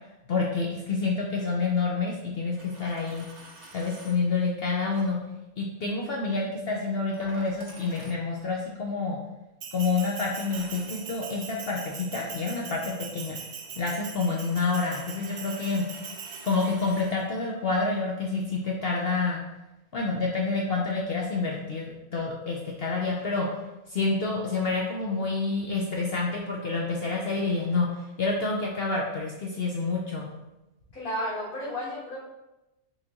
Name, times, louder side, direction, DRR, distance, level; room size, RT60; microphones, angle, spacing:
voice 1, 0.3-3.3 3.7-5.2 5.6-9.2 9.7-13.4 13.8-15.9 16.4-19.4 19.9-23.5 23.9-27.9 28.2-30.3, left 3 dB, 60° left, -2 dB, 0.6 m, -28 dB
Coin (dropping), 2.4-4.2 4.9-5.1 7.1-8.6 10.4-17.2, right 2 dB, 80° right, 1.4 m, -50 dB
Bell, 9.6-17.0, right 6 dB, 65° right, 0.7 m, -42 dB
voice 2, 30.9-32.2, equal, 40° left, -11 dB, 1.6 m, -32 dB
4.3 x 3.7 x 2.9 m, 0.97 s
omnidirectional pair, 1.5 m